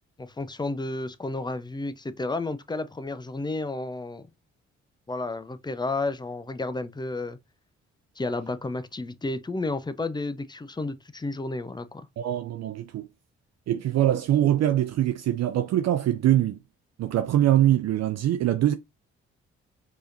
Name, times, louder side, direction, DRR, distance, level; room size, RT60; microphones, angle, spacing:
voice 1, 0.2-4.3 5.1-7.4 8.2-12.0, left 2 dB, 15° left, 0.6 m, -32 dB
voice 2, 12.2-13.1 13.7-16.6 17.0-18.7, right 12 dB, 55° right, 0.5 m, -23 dB
4.7 x 2.9 x 2.6 m
hypercardioid pair, 45°, 33 cm